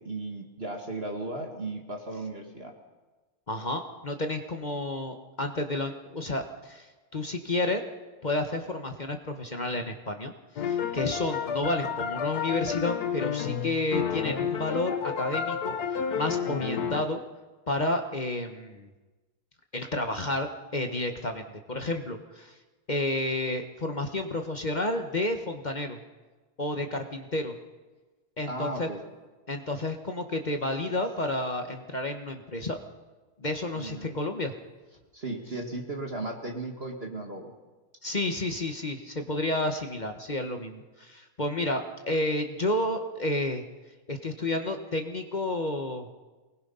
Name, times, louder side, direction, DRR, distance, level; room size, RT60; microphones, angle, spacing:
voice 1, 0.0-2.7 28.5-29.0 33.7-34.1 35.1-37.5, right 2 dB, 30° right, 2 dB, 1.9 m, -36 dB
voice 2, 3.5-7.8 8.2-17.2 17.7-18.9 19.7-22.6 22.9-26.0 26.6-27.6 28.4-28.9 29.5-32.8 33.4-34.6 38.0-43.6 44.1-46.1, left 1 dB, 30° left, 5 dB, 0.9 m, -31 dB
sound 1, 10.6-17.0, left 7 dB, 55° left, 1.3 m, -30 dB
23.5 x 20.0 x 5.6 m, 1.2 s
omnidirectional pair, 2.4 m